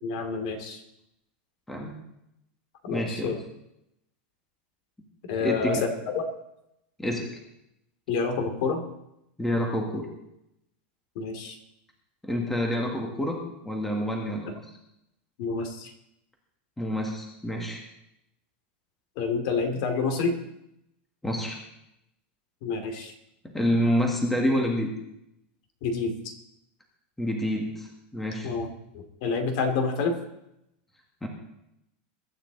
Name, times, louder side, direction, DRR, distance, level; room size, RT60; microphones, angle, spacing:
voice 1, 0.0-0.8 2.8-3.4 5.3-6.2 8.1-8.8 11.2-11.6 14.5-14.6 15.4-15.9 19.2-20.4 22.6-23.1 25.8-26.1 28.4-28.7 28.9-30.1, left 4 dB, 50° left, 6 dB, 2.5 m, -28 dB
voice 2, 2.9-3.3 5.4-5.8 7.0-7.4 9.4-10.1 12.2-13.4 13.6-14.6 16.8-17.8 21.2-21.6 23.5-24.9 27.2-28.5 31.2-31.3, equal, 5° left, 0 dB, 1.8 m, -28 dB
22.5 x 12.0 x 4.0 m, 0.82 s
supercardioid pair, 175°, 6 cm